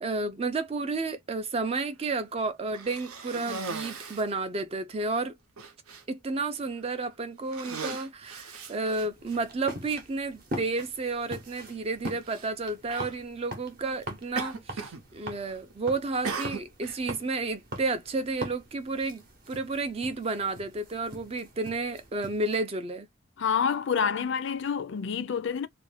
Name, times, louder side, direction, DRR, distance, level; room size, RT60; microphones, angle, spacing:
voice 1, 0.0-5.4 6.1-23.1, right 3 dB, 25° right, 0.3 m, -31 dB
Cough, 2.7-4.3 5.1-5.2 5.6-6.0 6.8-7.0 7.4-9.4 10.3-10.4 12.2-12.5 12.9-13.2 14.4-15.0 15.3-15.7 16.2-17.0, right 4 dB, 85° right, 0.7 m, -38 dB
sound 1, 9.0-22.6, equal, 40° right, 0.7 m, -43 dB
voice 2, 23.4-25.7, left 6 dB, 55° left, 0.4 m, -28 dB
2.4 x 2.1 x 3.2 m
head